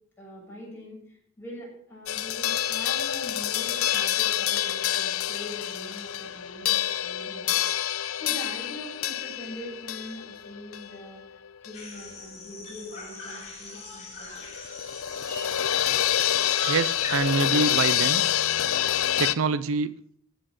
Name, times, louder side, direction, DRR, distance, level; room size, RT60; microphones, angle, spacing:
voice 1, 0.2-11.2 11.6-14.4, equal, 10° left, -4 dB, 6.9 m, -43 dB
sound 1, 2.1-12.0 12.2-12.3 14.4-19.3, left 11 dB, 85° left, 0.6 m, -27 dB
sound 2, 11.7-17.2, left 2 dB, 35° left, 4.9 m, -40 dB
voice 2, 16.7-18.2 19.2-19.9, right 4 dB, 75° right, 17 dB, 0.5 m, -25 dB
15.0 x 7.8 x 6.5 m, 0.65 s
head